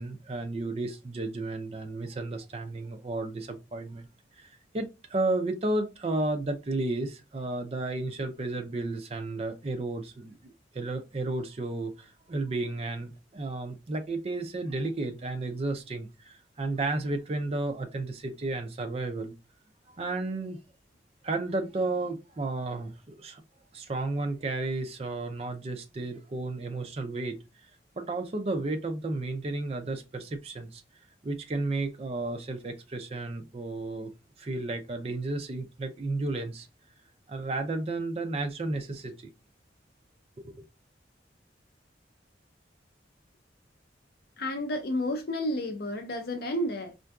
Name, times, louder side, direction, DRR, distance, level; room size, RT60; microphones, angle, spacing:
voice 1, 0.0-4.1 4.4-19.3 20.0-20.6 21.2-23.4 23.7-27.4 28.0-30.8 31.2-34.1 34.4-36.7 37.3-39.3 40.4-40.6, right 2 dB, 35° right, 0.4 m, -33 dB
voice 2, 44.4-46.9, left 1 dB, 60° left, 0.5 m, -31 dB
4.4 x 2.5 x 2.3 m
head